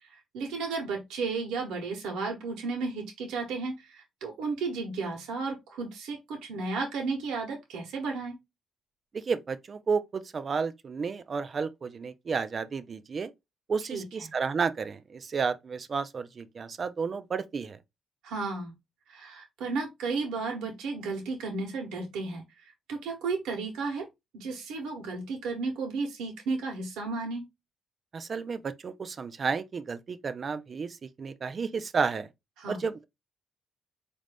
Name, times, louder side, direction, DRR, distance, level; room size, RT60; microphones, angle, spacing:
voice 1, 0.3-8.3 13.9-14.0 18.2-18.7 19.1-22.4 22.9-24.1 24.3-27.4 32.6-32.8, right 4 dB, 85° right, 1.0 m, -33 dB
voice 2, 9.1-13.3 13.7-17.8 28.1-32.3 32.7-33.1, right 5 dB, 40° right, 0.5 m, -32 dB
4.2 x 2.6 x 3.3 m
cardioid pair, 90°, 0 cm